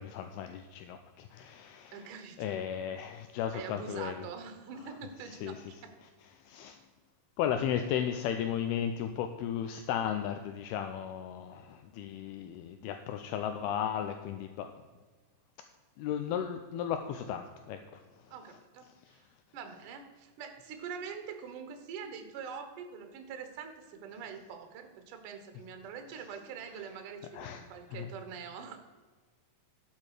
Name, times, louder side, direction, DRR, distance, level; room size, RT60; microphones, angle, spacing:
voice 1, 0.0-2.1 2.4-4.3 5.3-5.6 6.4-6.8 7.4-14.7 16.0-18.0 19.1-19.2 27.3-27.6 27.9-28.1, left 9 dB, 80° left, 7 dB, 2.3 m, -35 dB
voice 2, 1.9-2.5 3.5-5.9 18.3-19.2 19.5-28.8, right 6 dB, 65° right, 7 dB, 2.2 m, -44 dB
12.0 x 7.5 x 4.9 m, 1.4 s
omnidirectional pair, 5.1 m